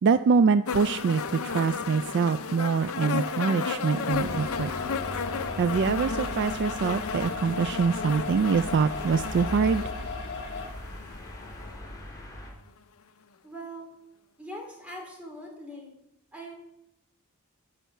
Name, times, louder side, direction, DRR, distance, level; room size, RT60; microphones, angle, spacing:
voice 1, 0.0-4.7 5.6-9.8, right 5 dB, 50° right, 11 dB, 0.3 m, -24 dB
sound 1, 0.7-11.7 12.7-12.8, left 5 dB, 75° left, 0.6 m, -34 dB
sound 2, 2.9-10.7, left 4 dB, 55° left, 1.9 m, -38 dB
sound 3, 4.1-12.5, left 1 dB, 15° left, 2.5 m, -39 dB
voice 2, 13.4-13.9 14.4-15.9 16.3-16.5, equal, 5° right, 0 dB, 2.7 m, -41 dB
11.0 x 5.6 x 8.0 m, 0.83 s
head